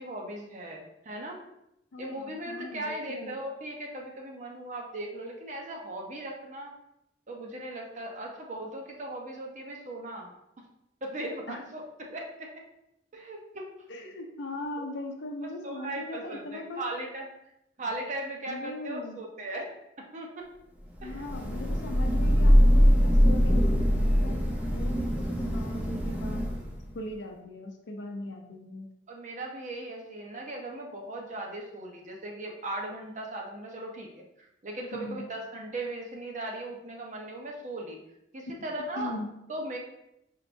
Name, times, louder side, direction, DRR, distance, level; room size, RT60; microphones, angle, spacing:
voice 1, 0.0-1.4 2.0-6.7 7.3-10.3 11.0-12.5 13.1-13.6 14.0-14.1 14.8-14.9 15.4-17.3 17.8-19.7 20.0-20.4 21.0-21.2 29.1-38.0 38.3-39.1 39.5-39.8, right 1 dB, 45° right, 0 dB, 0.7 m, -38 dB
voice 2, 1.9-3.4 11.5-11.6 13.9-16.9 18.5-19.3 21.0-24.4 24.7-26.5 26.9-28.9 34.9-35.3 39.0-39.3, left 2 dB, 85° left, 3 dB, 0.5 m, -39 dB
Thunder / Rain, 21.1-26.8, equal, 10° right, 0.7 m, -23 dB
4.6 x 3.4 x 2.6 m, 0.82 s
head